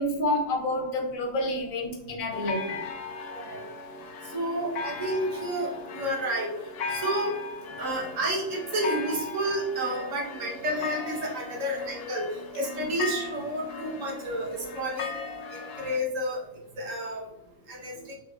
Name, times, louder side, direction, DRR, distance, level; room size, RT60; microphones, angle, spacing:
voice 1, 0.0-2.8 12.8-12.9 18.0-18.1, left 1 dB, 90° left, 1 dB, 1.3 m, -29 dB
sound 1, 2.3-16.0, left 4 dB, 70° left, 1.0 m, -37 dB
voice 2, 3.3-3.6 4.3-6.5 6.9-7.3 7.8-12.2 12.5-15.2 15.5-16.4 16.7-17.2 17.7-18.2, right 1 dB, 70° right, -2 dB, 1.5 m, -30 dB
4.3 x 3.6 x 2.4 m, 0.85 s
omnidirectional pair, 1.4 m